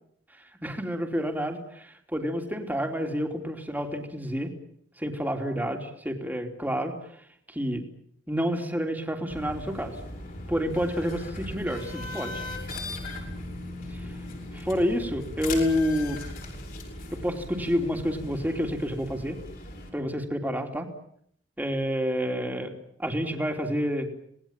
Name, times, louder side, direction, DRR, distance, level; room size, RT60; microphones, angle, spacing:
voice 1, 0.6-4.5 5.0-6.9 7.5-7.9 8.3-10.0 10.5-12.4 14.0-14.1 14.5-16.2 17.1-19.4 19.9-20.9 21.6-24.1, equal, 10° right, 4 dB, 3.1 m, -29 dB
sound 1, 9.3-19.9, left 2 dB, 50° left, 7.6 m, -38 dB
27.0 x 19.5 x 9.0 m, 0.68 s
head